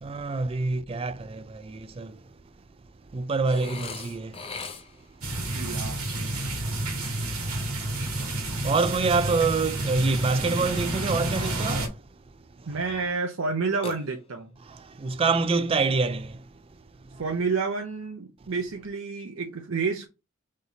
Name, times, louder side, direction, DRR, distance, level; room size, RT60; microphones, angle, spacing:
voice 1, 0.0-2.2 3.1-4.4 7.1-7.8 8.6-12.0 12.6-12.8 14.6-16.5 17.1-17.2, right 4 dB, 25° right, 0.3 m, -27 dB
Burping eructation, 3.4-5.2 13.8-14.6, left 5 dB, 25° left, 0.7 m, -39 dB
sound 1, 5.2-11.9, right 2 dB, 85° right, 1.5 m, -30 dB
voice 2, 5.4-6.4 12.7-14.5 17.2-20.1, right 4 dB, 65° right, 0.7 m, -30 dB
3.9 x 3.2 x 4.0 m
head